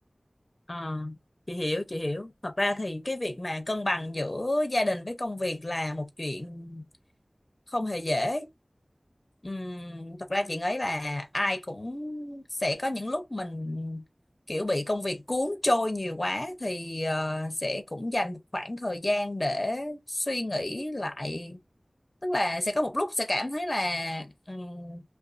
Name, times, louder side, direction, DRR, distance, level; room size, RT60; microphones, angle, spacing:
voice 1, 0.7-1.1 1.5-6.8 7.7-8.5 9.4-14.0 14.5-21.6 22.2-25.0, left 1 dB, 40° left, 0.5 m, -30 dB
2.5 x 2.2 x 2.4 m
wide cardioid pair, 45°, 0 cm